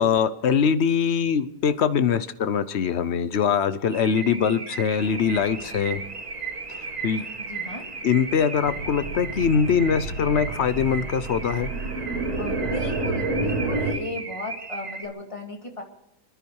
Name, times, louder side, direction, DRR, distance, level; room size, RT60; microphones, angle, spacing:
voice 1, 0.0-6.0 6.7-7.2 8.0-11.7, left 7 dB, 55° left, 13 dB, 1.0 m, -23 dB
Car / Alarm, 3.9-15.1, right 4 dB, 30° right, 1.1 m, -36 dB
sound 1, 5.0-13.9, right 2 dB, 85° right, 3.0 m, -31 dB
voice 2, 7.4-7.9 12.4-15.8, left 1 dB, 20° left, 2 dB, 2.3 m, -35 dB
28.5 x 10.5 x 4.7 m, 0.85 s
omnidirectional pair, 1.5 m